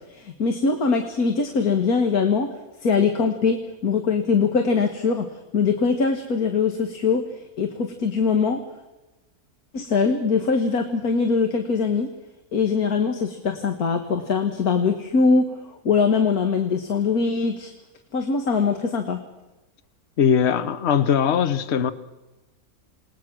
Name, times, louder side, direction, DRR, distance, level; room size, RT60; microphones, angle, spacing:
voice 1, 0.1-2.5 2.8-7.2 7.6-8.6 9.7-12.1 12.5-15.5 15.8-17.7 18.1-19.2, left 5 dB, 75° left, 5 dB, 2.0 m, -22 dB
voice 2, 20.2-21.9, left 7 dB, 50° left, 13 dB, 1.2 m, -20 dB
28.0 x 19.5 x 6.2 m, 1.0 s
omnidirectional pair, 1.6 m